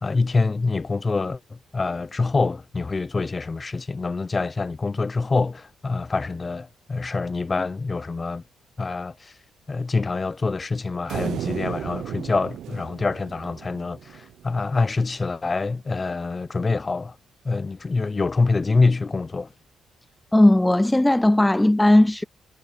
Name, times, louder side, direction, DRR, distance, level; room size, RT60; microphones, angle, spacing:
voice 1, 0.0-8.4 8.8-9.3 9.7-17.2 17.4-19.5, left 3 dB, 25° left, 0.8 m, -25 dB
sound 1, 11.1-14.5, right 11 dB, 70° right, 0.6 m, -34 dB
voice 2, 20.3-22.2, left 1 dB, 10° left, 0.3 m, -17 dB
cardioid pair, 90°, 0 cm